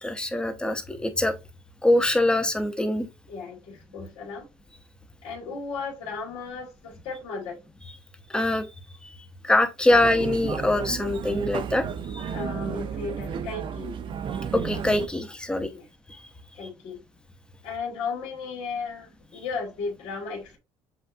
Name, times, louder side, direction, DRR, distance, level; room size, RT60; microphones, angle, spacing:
voice 1, 0.0-1.3 1.8-3.1 8.3-8.7 9.0-9.1 9.4-11.8 12.1-12.3 14.5-15.7, left 1 dB, 10° left, 0.8 m, -23 dB
voice 2, 3.3-4.5 5.2-7.6 12.3-14.0 15.7-15.9 16.5-17.0 17.6-20.6, left 4 dB, 85° left, 1.9 m, -35 dB
sound 1, 9.9-15.1, right 7 dB, 50° right, 0.6 m, -33 dB
7.5 x 2.5 x 2.6 m
cardioid pair, 115°, 11 cm